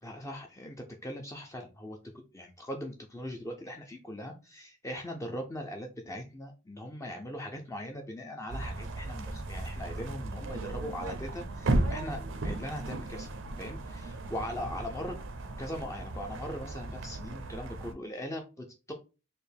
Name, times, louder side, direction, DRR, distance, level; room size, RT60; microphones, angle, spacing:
voice 1, 0.0-2.0 2.3-13.3 13.6-15.2 15.6-18.9, equal, 15° left, 2 dB, 0.5 m, -40 dB
sound 1, 8.5-17.9, right 2 dB, 65° right, 0.6 m, -35 dB
4.3 x 2.5 x 3.3 m, 0.30 s
head